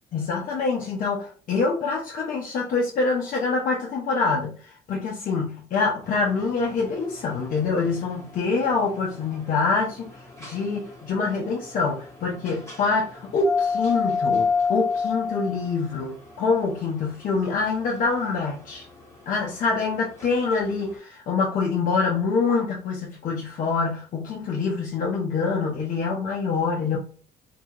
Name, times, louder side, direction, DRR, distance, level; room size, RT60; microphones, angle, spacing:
voice 1, 0.1-18.8 19.3-27.0, left 4 dB, 55° left, -3 dB, 0.7 m, -25 dB
sound 1, 6.0-21.0, left 5 dB, 15° left, 1.2 m, -32 dB
2.7 x 2.3 x 2.8 m, 0.42 s
cardioid pair, 110°, 17 cm